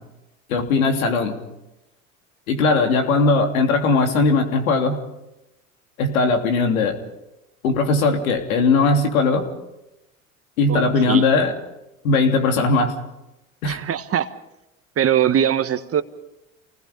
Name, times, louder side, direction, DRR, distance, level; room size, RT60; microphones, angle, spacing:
voice 1, 0.5-1.4 2.5-5.0 6.0-7.0 7.6-9.4 10.6-11.5 12.0-12.9 13.6-13.8, left 3 dB, 80° left, 4 dB, 3.3 m, -19 dB
voice 2, 13.6-14.3 15.0-16.0, right 9 dB, 35° right, 11 dB, 1.5 m, -21 dB
28.5 x 19.5 x 5.3 m, 0.93 s
hypercardioid pair, 80°, 41 cm